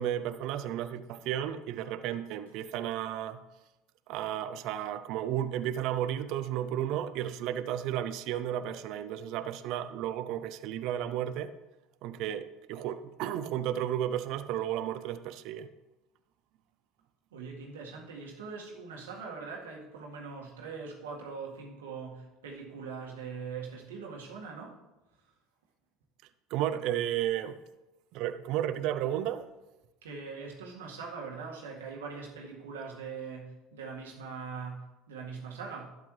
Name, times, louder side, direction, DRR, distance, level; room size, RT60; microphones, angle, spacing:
voice 1, 0.0-3.4 4.1-11.5 12.0-15.7 26.5-27.6 28.1-29.5, right 11 dB, 65° right, 0.6 m, -33 dB
voice 2, 17.3-24.8 30.0-35.9, right 5 dB, 85° right, 2.0 m, -42 dB
12.0 x 8.3 x 3.3 m
hypercardioid pair, 75°, 0 cm